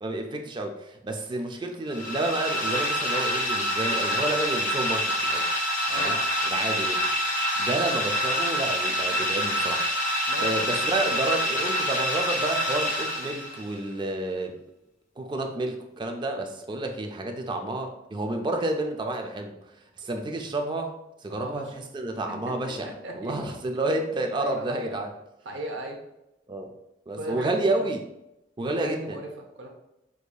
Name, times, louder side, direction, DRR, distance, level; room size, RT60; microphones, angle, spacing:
voice 1, 0.0-5.5 6.0-6.2 6.5-7.0 7.6-10.1 10.4-14.6 15.2-19.6 20.0-20.9 21.2-25.1 26.5-26.7 27.1-28.0 28.6-29.2, right 2 dB, 25° right, 4 dB, 0.3 m, -30 dB
sound 1, 1.9-13.7, equal, 45° left, 0.6 m, -26 dB
voice 2, 5.9-6.2 10.3-10.6 21.3-21.7 22.5-22.6 23.0-23.5 24.4-24.9 25.4-26.0 27.1-27.9 28.7-29.7, right 1 dB, 65° right, 1 dB, 0.7 m, -37 dB
4.7 x 2.7 x 2.2 m, 0.87 s
head